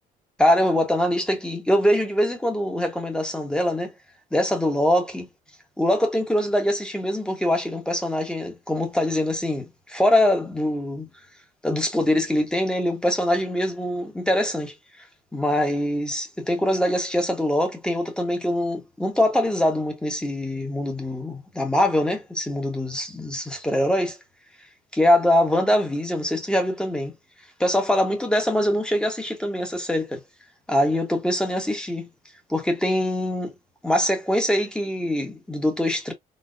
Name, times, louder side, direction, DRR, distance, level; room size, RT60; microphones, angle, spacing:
voice 1, 0.4-3.9 4.3-5.3 5.8-11.1 11.6-14.7 15.3-24.2 24.9-27.1 27.6-30.2 30.7-32.1 32.5-33.5 33.8-36.1, left 1 dB, 5° left, 1.1 m, -23 dB
4.1 x 2.3 x 2.4 m
cardioid pair, 110°, 17 cm